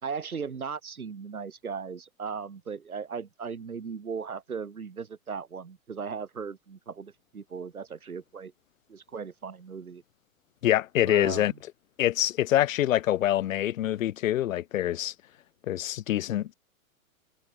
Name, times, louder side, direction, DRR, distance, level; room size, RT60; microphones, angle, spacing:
voice 1, 0.0-8.5 8.9-10.0 11.1-11.6, right 6 dB, 90° right, 4.7 m, -37 dB
voice 2, 10.6-11.5 12.0-15.1 15.7-16.5, left 13 dB, 65° left, 2.0 m, -25 dB
hypercardioid pair, 110°, 42 cm